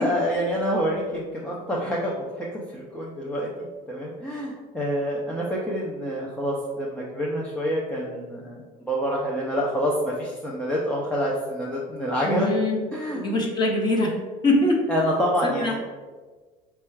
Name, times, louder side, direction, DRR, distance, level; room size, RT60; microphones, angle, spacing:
voice 1, 0.0-3.5 3.9-12.5 12.9-13.2 14.9-15.8, equal, 5° left, -4 dB, 0.4 m, -27 dB
voice 2, 12.2-12.8 13.1-14.1 14.4-14.8 15.4-15.8, left 1 dB, 25° left, 0 dB, 0.8 m, -23 dB
4.3 x 2.3 x 4.5 m, 1.4 s
cardioid pair, 160°, 17 cm